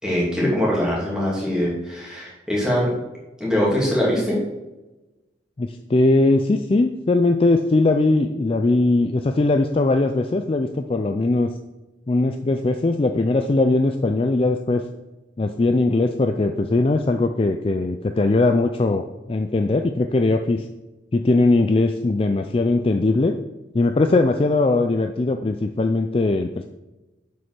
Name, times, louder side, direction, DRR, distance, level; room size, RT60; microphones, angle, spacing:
voice 1, 0.0-2.9 3.4-4.4, equal, 5° right, -5 dB, 2.5 m, -22 dB
voice 2, 5.6-11.5 12.1-14.9 15.4-20.7 21.1-23.3 23.7-26.6, left 2 dB, 30° left, 6 dB, 0.3 m, -20 dB
7.8 x 5.3 x 5.8 m, 1.1 s
head